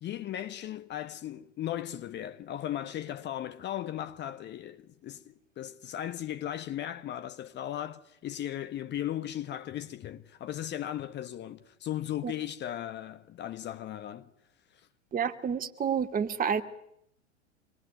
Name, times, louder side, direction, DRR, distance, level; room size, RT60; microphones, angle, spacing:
voice 1, 0.0-14.3 14.7-14.8, left 11 dB, 30° left, 1.5 m, -37 dB
voice 2, 15.1-16.6, right 7 dB, 25° right, 2.6 m, -29 dB
27.0 x 22.5 x 9.4 m
figure-of-eight pair, 90°, 34 cm